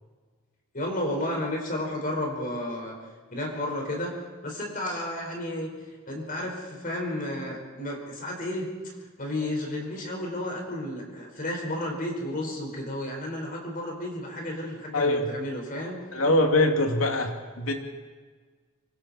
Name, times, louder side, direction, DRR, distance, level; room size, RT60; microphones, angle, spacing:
voice 1, 0.7-2.9 3.3-4.2 4.4-5.7 6.1-8.7 9.2-16.0, left 1 dB, 45° left, 0 dB, 4.9 m, -32 dB
voice 2, 14.9-15.3 16.1-17.7, left 2 dB, 80° left, 3 dB, 2.7 m, -23 dB
25.5 x 24.0 x 4.4 m, 1.5 s
head